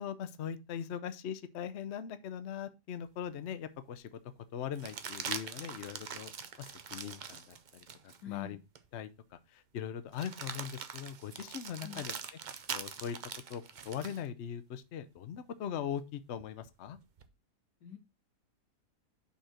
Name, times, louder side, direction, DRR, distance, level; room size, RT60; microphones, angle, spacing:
voice 1, 0.0-4.2 4.5-6.3 6.6-8.6 8.9-12.2 12.7-13.2 13.5-17.0, left 8 dB, 60° left, 0.8 m, -40 dB
sound 1, 3.2-3.3 4.7-8.2 8.7-8.9 10.1-14.2 16.4-17.3, right 6 dB, 70° right, 0.4 m, -43 dB
voice 2, 8.2-8.6 11.8-12.1 17.8-18.0, left 10 dB, 80° left, 2.3 m, -44 dB
5.7 x 4.3 x 6.1 m
omnidirectional pair, 1.7 m